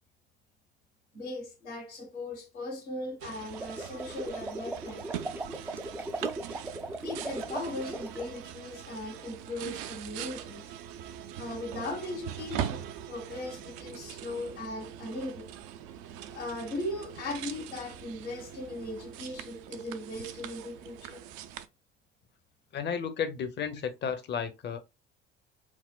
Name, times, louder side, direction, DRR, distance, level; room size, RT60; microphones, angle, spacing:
voice 1, 1.1-5.0 7.0-10.7 11.4-15.5 16.3-21.2, left 2 dB, 80° left, 1.2 m, -38 dB
sound 1, 3.2-21.7, right 10 dB, 65° right, 0.5 m, -42 dB
sound 2, 3.4-8.3, right 2 dB, 5° right, 0.3 m, -38 dB
voice 2, 22.7-24.8, left 7 dB, 30° left, 0.7 m, -33 dB
6.0 x 2.1 x 2.2 m
hypercardioid pair, 60°, 33 cm